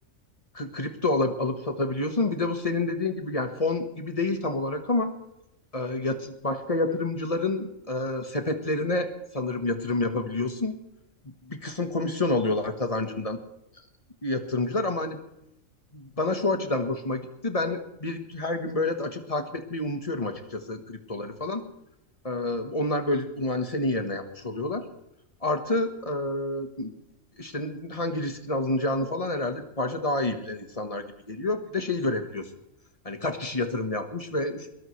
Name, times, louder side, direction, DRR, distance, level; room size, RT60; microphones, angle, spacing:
voice 1, 0.5-5.1 5.7-10.7 11.5-13.4 14.2-15.2 15.9-21.6 22.2-24.8 25.4-26.9 27.4-32.5 33.0-34.7, left 2 dB, 25° left, 6 dB, 1.4 m, -28 dB
21.0 x 19.0 x 3.3 m, 0.85 s
omnidirectional pair, 1.4 m